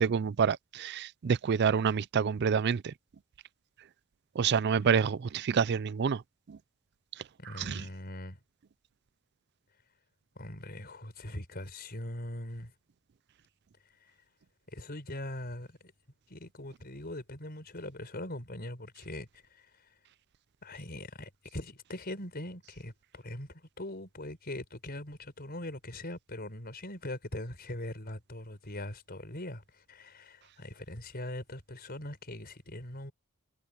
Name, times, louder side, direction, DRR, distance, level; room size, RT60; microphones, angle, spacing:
voice 1, 0.0-2.9 4.4-6.2 7.7-7.8, right 6 dB, 50° right, 0.4 m, -27 dB
voice 2, 7.4-8.4 10.4-12.7 14.7-15.9 16.3-19.9 20.6-33.1, left 1 dB, 45° left, 5.3 m, -41 dB
head